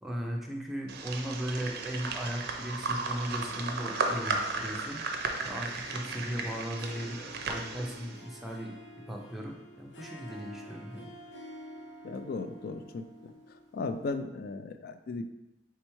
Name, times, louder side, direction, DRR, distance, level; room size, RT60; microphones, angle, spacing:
voice 1, 0.0-5.0 5.4-8.8 9.1-11.1, equal, ahead, -1 dB, 0.5 m, -37 dB
sound 1, 0.9-8.2, right 3 dB, 60° right, 0.4 m, -35 dB
Harp, 3.0-14.1, left 1 dB, 85° left, 0.8 m, -49 dB
voice 2, 12.0-13.3 13.7-15.2, left 3 dB, 55° left, 8 dB, 0.3 m, -36 dB
3.4 x 3.0 x 4.4 m, 0.94 s
head